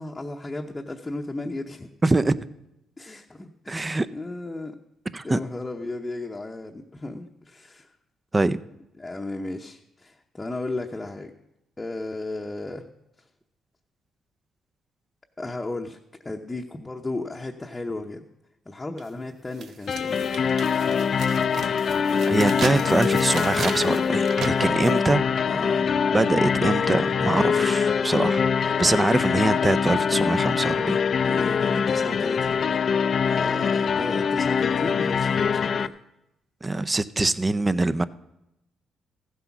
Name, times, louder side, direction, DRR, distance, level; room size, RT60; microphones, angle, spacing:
voice 1, 0.0-1.9 3.0-4.8 5.2-7.9 9.0-11.3 11.8-12.9 15.4-16.0 16.2-18.3 18.7-20.4 25.5-26.0 31.2-35.9, left 2 dB, 20° left, 0.8 m, -34 dB
voice 2, 2.0-2.4 3.7-4.1 5.1-5.4 8.3-8.6 22.3-25.5 26.1-31.0 36.6-38.0, right 2 dB, 20° right, 0.5 m, -23 dB
sound 1, 19.0-19.1 19.6-25.0, right 6 dB, 65° right, 0.9 m, -37 dB
sound 2, 19.9-35.9, left 6 dB, 50° left, 0.5 m, -23 dB
14.5 x 8.1 x 5.9 m
cardioid pair, 90°, 0 cm